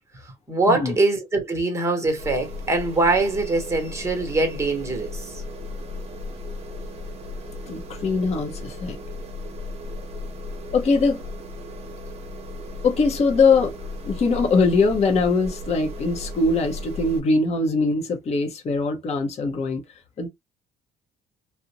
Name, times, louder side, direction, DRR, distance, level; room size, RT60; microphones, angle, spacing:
voice 1, 0.5-5.4, right 2 dB, 15° right, 1.0 m, -23 dB
sound 1, 2.2-17.2, left 2 dB, 40° right, 0.8 m, -35 dB
voice 2, 7.7-9.0 10.7-11.2 12.8-13.7 14.0-19.8 20.2-20.3, left 3 dB, 40° left, 0.7 m, -22 dB
2.5 x 2.1 x 2.8 m
cardioid pair, 110°, 17 cm